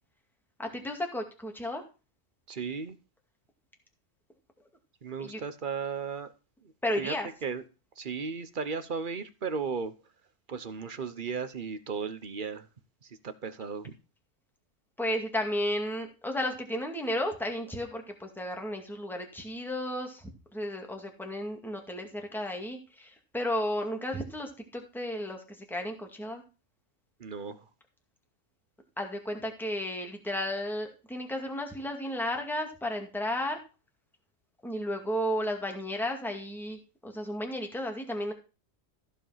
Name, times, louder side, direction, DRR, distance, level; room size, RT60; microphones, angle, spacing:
voice 1, 0.6-1.8 5.2-5.4 6.8-7.3 15.0-26.4 29.0-33.6 34.6-38.3, left 1 dB, ahead, 2.1 m, -33 dB
voice 2, 2.5-3.0 5.0-6.3 6.6-6.7 7.0-7.1 7.4-7.6 8.0-9.9 10.5-12.7 13.0-13.9 27.2-27.7, right 5 dB, 40° right, 1.1 m, -35 dB
15.0 x 5.3 x 5.7 m
omnidirectional pair, 1.4 m